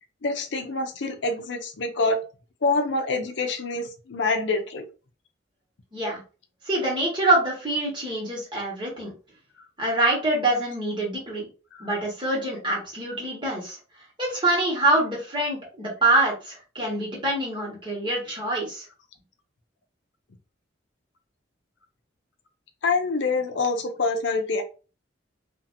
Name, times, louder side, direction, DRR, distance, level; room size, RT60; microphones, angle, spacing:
voice 1, 0.2-2.2 2.6-4.8 11.8-11.9 22.8-24.6, left 3 dB, 75° left, 5 dB, 0.5 m, -26 dB
voice 2, 6.6-9.1 9.8-11.5 11.8-13.8 14.2-18.8, right 2 dB, 25° right, -4 dB, 1.3 m, -25 dB
2.6 x 2.5 x 2.6 m, 0.34 s
head